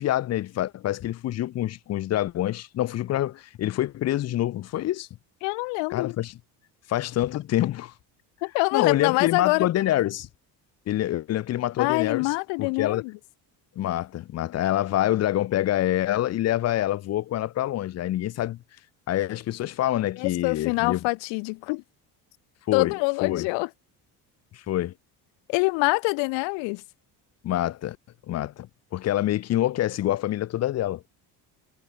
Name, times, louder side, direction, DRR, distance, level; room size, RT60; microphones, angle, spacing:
voice 1, 0.0-5.1 5.9-6.4 6.9-7.9 8.7-10.3 10.9-13.0 13.8-18.6 19.1-21.0 22.7-22.9 23.2-23.5 24.5-24.9 27.4-28.0 28.3-31.0, left 13 dB, 40° left, 0.4 m, -26 dB
voice 2, 5.4-6.2 8.4-9.7 11.8-13.1 20.2-21.8 22.7-23.7 25.5-26.8, left 31 dB, 90° left, 0.6 m, -25 dB
cardioid pair, 95°, 42 cm